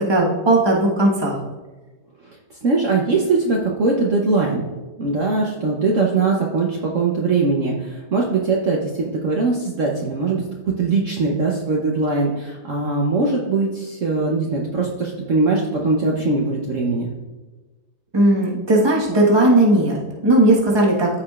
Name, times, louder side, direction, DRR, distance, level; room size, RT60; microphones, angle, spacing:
voice 1, 0.1-1.4 18.1-21.2, right 1 dB, 15° right, -3 dB, 1.3 m, -17 dB
voice 2, 2.6-4.7 5.0-17.1, right 3 dB, 55° right, -2 dB, 1.1 m, -21 dB
14.5 x 4.9 x 2.4 m, 1.2 s
omnidirectional pair, 1.9 m